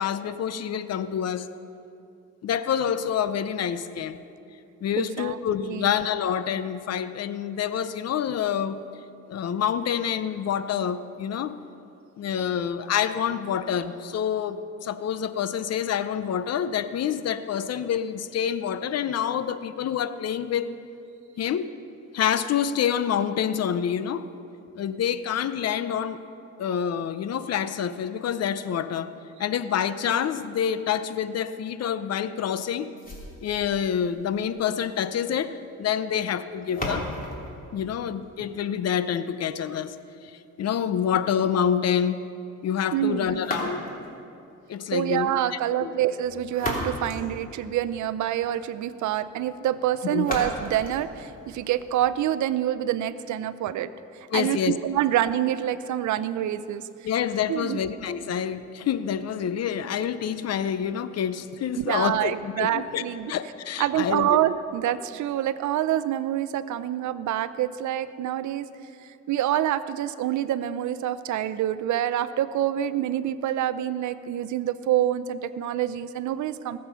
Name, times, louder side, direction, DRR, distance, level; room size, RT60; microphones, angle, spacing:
voice 1, 0.0-1.5 2.4-4.2 4.8-8.8 9.3-11.6 12.2-20.8 21.4-21.7 22.1-24.3 24.8-26.2 26.6-29.1 29.4-32.9 33.4-37.1 37.7-40.0 40.2-42.3 42.6-43.8 44.7-45.9 50.1-50.3 54.3-54.8 57.0-63.0 63.3-64.4, left 8 dB, 55° left, 13 dB, 0.7 m, -27 dB
voice 2, 5.0-5.4 5.7-5.9 42.9-43.4 44.9-53.9 54.3-56.8 57.5-57.8 61.8-63.3 63.8-68.7 69.3-76.8, right 12 dB, 70° right, 14 dB, 0.6 m, -26 dB
sound 1, 33.0-38.9 43.3-44.2 46.2-48.2 50.2-52.2, left 1 dB, 30° left, 3.0 m, -36 dB
19.0 x 7.6 x 5.6 m, 2.7 s
cardioid pair, 90°, 30 cm